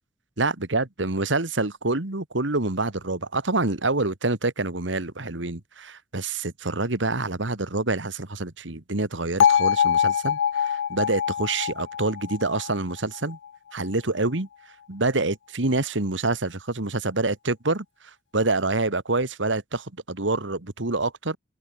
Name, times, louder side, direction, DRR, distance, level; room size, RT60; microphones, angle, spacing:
voice 1, 0.4-13.4 13.7-14.5 14.9-17.9 18.3-21.4, right 2 dB, 85° right, 2.0 m, -26 dB
Bell, 9.4-13.5, left 8 dB, 80° left, 0.3 m, -23 dB
open air
head